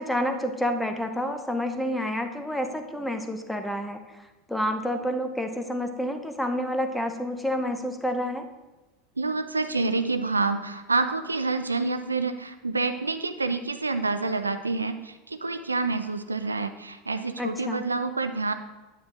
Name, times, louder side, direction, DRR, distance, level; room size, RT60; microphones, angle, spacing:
voice 1, 0.0-4.0 4.5-8.5 17.4-17.8, equal, 5° left, 6 dB, 0.7 m, -29 dB
voice 2, 9.2-18.5, right 3 dB, 85° right, 9 dB, 0.4 m, -28 dB
9.3 x 8.7 x 2.5 m, 1.1 s
figure-of-eight pair, 80°, 0 cm